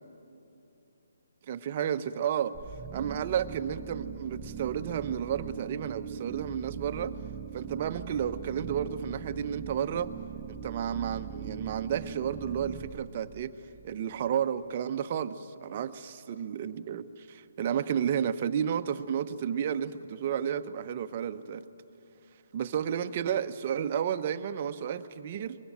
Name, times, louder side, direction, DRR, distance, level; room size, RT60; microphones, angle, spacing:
voice 1, 1.5-2.6 2.9-7.1 7.5-10.1 10.5-13.5 13.8-15.9 16.3-21.6 22.5-25.6, right 8 dB, 40° right, 9 dB, 1.0 m, -32 dB
sound 1, 2.5-14.3, right 7 dB, 15° right, 1.1 m, -41 dB
24.5 x 22.5 x 9.1 m, 2.9 s
figure-of-eight pair, 140°, 0 cm